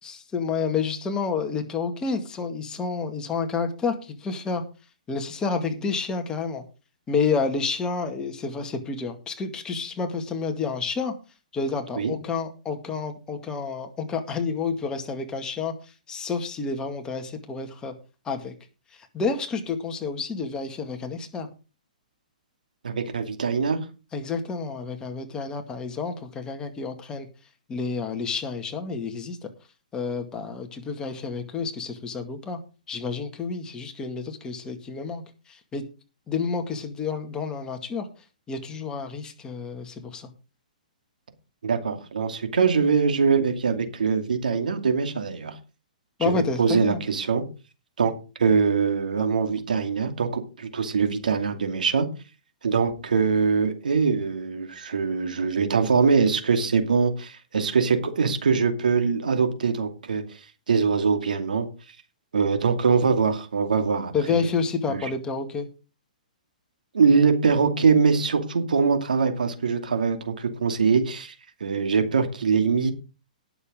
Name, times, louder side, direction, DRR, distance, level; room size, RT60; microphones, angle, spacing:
voice 1, 0.0-4.6 5.1-6.6 7.1-11.1 11.5-15.7 16.1-17.9 18.3-18.5 19.1-21.5 24.1-27.3 27.7-29.5 29.9-32.6 32.9-35.2 35.5-35.8 36.3-38.1 38.5-40.3 46.2-47.0 64.1-65.7, left 5 dB, 15° left, 2.1 m, -29 dB
voice 2, 22.8-23.8 41.6-45.5 46.2-47.4 48.0-48.1 48.4-52.1 52.6-60.2 60.7-61.7 62.3-64.4 64.9-65.1 66.9-71.3 71.6-72.9, right 5 dB, 75° right, 2.5 m, -23 dB
19.0 x 7.1 x 3.8 m
hypercardioid pair, 125°, 4 cm